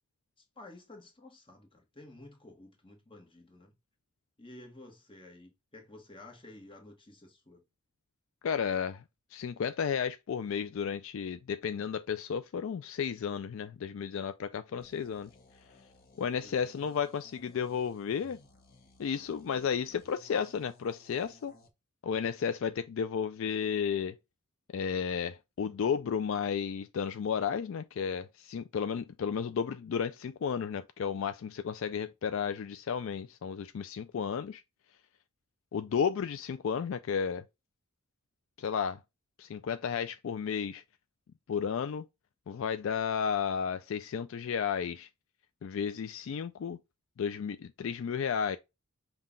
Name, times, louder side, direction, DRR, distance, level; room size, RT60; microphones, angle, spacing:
voice 1, 0.6-3.7 4.4-7.6 14.7-15.0 16.4-16.9 29.2-29.5, left 2 dB, 25° left, 1.2 m, -53 dB
voice 2, 8.4-9.0 9.3-15.3 16.2-18.4 19.0-21.5 22.0-24.2 24.7-34.6 35.7-37.4 38.6-39.0 39.4-40.8 41.5-42.1 42.5-45.1 45.6-46.8 47.2-48.6, left 7 dB, 65° left, 0.3 m, -33 dB
sound 1, 14.8-21.7, left 2 dB, 45° left, 0.8 m, -60 dB
5.6 x 2.3 x 3.6 m
head